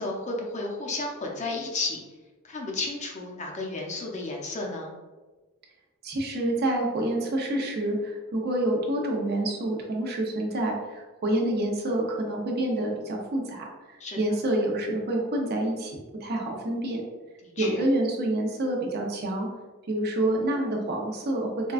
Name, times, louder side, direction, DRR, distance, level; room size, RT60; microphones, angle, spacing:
voice 1, 0.0-2.0 2.4-4.9 14.0-14.2 17.4-17.8, left 2 dB, 35° left, 0 dB, 0.6 m, -32 dB
voice 2, 6.0-13.7 14.2-17.0 17.6-19.5 19.9-21.7, right 1 dB, 45° right, 0 dB, 0.7 m, -27 dB
4.5 x 2.2 x 2.4 m, 1.2 s
head